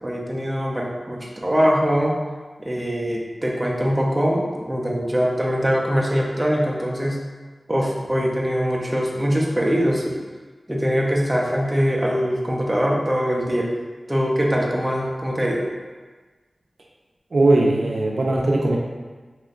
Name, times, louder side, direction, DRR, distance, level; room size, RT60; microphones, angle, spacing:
voice 1, 0.0-2.2 2.6-7.2 7.7-10.2 10.7-13.7 14.1-15.7, equal, 15° right, -2 dB, 0.5 m, -22 dB
voice 2, 17.3-18.8, right 2 dB, 70° right, -1 dB, 0.4 m, -19 dB
3.1 x 3.0 x 2.4 m, 1.4 s
wide cardioid pair, 75°, 0 cm